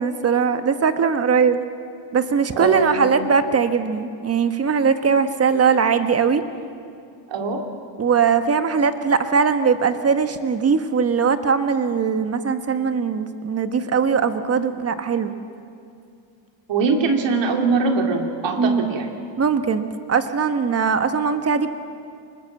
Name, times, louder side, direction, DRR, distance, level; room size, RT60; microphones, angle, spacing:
voice 1, 0.0-1.6 2.1-6.4 8.0-15.3 18.6-19.0 19.4-21.7, right 6 dB, 30° right, 9 dB, 1.4 m, -20 dB
voice 2, 2.6-3.1 7.3-7.6 16.7-19.1, right 4 dB, 60° right, 3 dB, 2.9 m, -22 dB
25.0 x 20.5 x 7.4 m, 2.4 s
cardioid pair, 125°, 50 cm